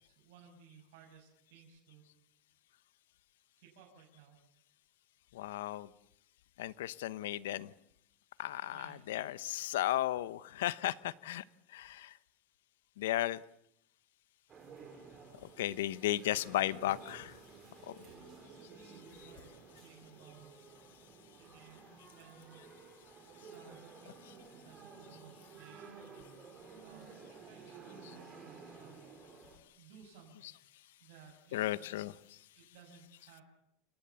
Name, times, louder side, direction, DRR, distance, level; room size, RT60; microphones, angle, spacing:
voice 1, 0.0-2.1 3.6-4.4 8.7-9.4 16.6-16.8 18.0-19.5 19.8-20.6 21.4-22.7 23.5-25.9 26.2-29.0 29.8-30.6 31.0-32.1 32.5-33.4, right 7 dB, 65° right, -2 dB, 6.2 m, -59 dB
voice 2, 5.3-5.9 6.6-7.7 8.4-12.2 13.0-13.4 15.4-17.4 17.8-18.0 19.2-19.3 23.4-23.5 31.5-32.4, left 14 dB, 90° left, 17 dB, 0.9 m, -35 dB
sound 1, 14.5-29.6, right 5 dB, 20° right, 4.2 m, -54 dB
29.0 x 18.5 x 7.1 m, 0.74 s
supercardioid pair, 170°, 0 cm